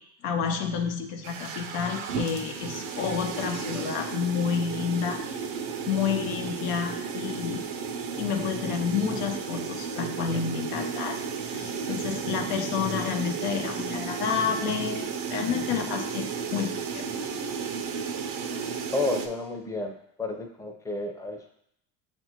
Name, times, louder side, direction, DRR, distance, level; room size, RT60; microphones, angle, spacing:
voice 1, 0.2-5.2 5.9-7.6 8.2-11.2 11.5-17.1, left 7 dB, 85° left, 4 dB, 0.8 m, -29 dB
sound 1, 1.2-19.3, right 6 dB, 80° right, 0.6 m, -33 dB
voice 2, 18.9-21.5, left 2 dB, 10° left, 2 dB, 0.6 m, -31 dB
7.0 x 2.5 x 2.9 m, 0.74 s
supercardioid pair, 85°, 42 cm